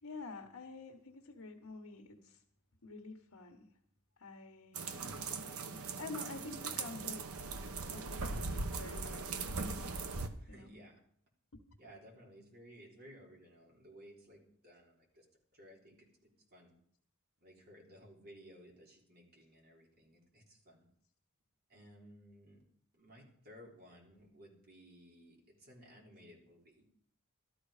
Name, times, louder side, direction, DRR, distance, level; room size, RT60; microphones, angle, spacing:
voice 1, 0.0-2.4 2.8-3.7 4.2-4.8 6.0-7.5 7.9-9.7 10.5-10.8 11.5-11.6, left 3 dB, 70° left, 3 dB, 1.4 m, -48 dB
sound 1, 4.7-10.3, right 4 dB, 75° right, 1.1 m, -40 dB
voice 2, 10.4-11.0 11.8-15.2 15.5-16.0 16.5-16.7 17.4-20.9 21.7-22.6 23.0-26.8, equal, 45° right, -1 dB, 3.6 m, -57 dB
13.0 x 13.0 x 5.0 m, 0.64 s
head